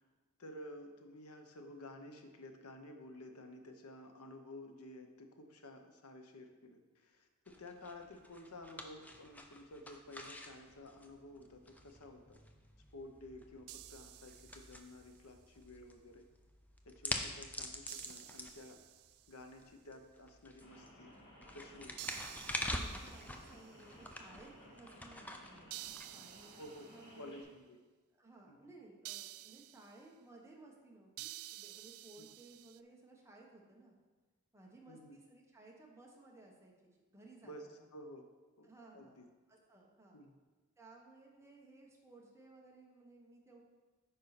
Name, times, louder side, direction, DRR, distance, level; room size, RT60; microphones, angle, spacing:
voice 1, 0.4-12.4 12.9-16.3 16.8-18.8 19.3-21.1 21.5-22.1 26.6-26.9 27.2-27.8 28.5-28.6 32.2-32.3 34.9-35.2 37.4-38.3 38.6-39.3 40.1-40.3, left 1 dB, 80° left, 5 dB, 0.9 m, -52 dB
sound 1, 7.5-26.7, left 1 dB, 5° left, 0.5 m, -47 dB
sound 2, 13.7-15.1 17.9-19.4 22.0-23.9 25.7-27.2 29.0-30.0 31.2-32.8, right 15 dB, 65° right, 0.3 m, -51 dB
Rain, 20.6-27.4, equal, 60° left, 2.4 m, -58 dB
voice 2, 22.7-25.7 26.0-26.6 26.9-27.5 28.2-34.0 34.5-37.8 38.6-40.2 40.8-43.6, right 2 dB, 15° right, -2 dB, 1.2 m, -59 dB
9.2 x 5.5 x 4.1 m, 1.3 s
head